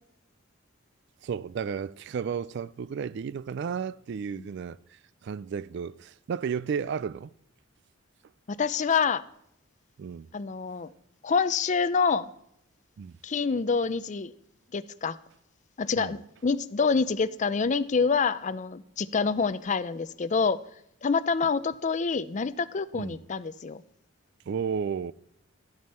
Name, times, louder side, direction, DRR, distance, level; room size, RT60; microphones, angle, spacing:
voice 1, 1.2-7.3 10.0-10.3 13.0-13.1 16.0-16.2 22.9-23.2 24.5-25.1, right 6 dB, 55° right, 0.3 m, -33 dB
voice 2, 8.5-9.2 10.3-10.9 11.2-12.3 13.2-14.3 14.7-15.2 15.8-20.6 21.0-23.8, left 5 dB, 35° left, 0.4 m, -27 dB
12.5 x 9.5 x 4.3 m
head